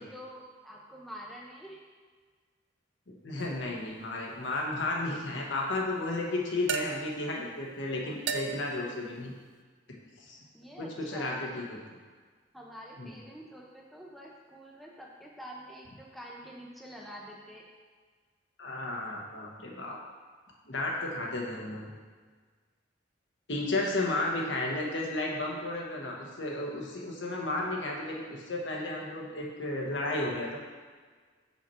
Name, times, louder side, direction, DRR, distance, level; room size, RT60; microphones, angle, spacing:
voice 1, 0.0-1.8 10.5-11.5 12.5-17.6, equal, ahead, -3 dB, 0.7 m, -47 dB
voice 2, 3.1-9.3 10.2-10.4 10.8-11.8 13.0-13.1 18.6-20.0 20.7-21.9 23.5-30.6, left 2 dB, 70° left, -2 dB, 1.2 m, -33 dB
sound 1, 3.4-3.8 6.7-7.3 8.3-8.9, right 6 dB, 60° right, 0.4 m, -35 dB
5.9 x 5.7 x 4.3 m, 1.5 s
head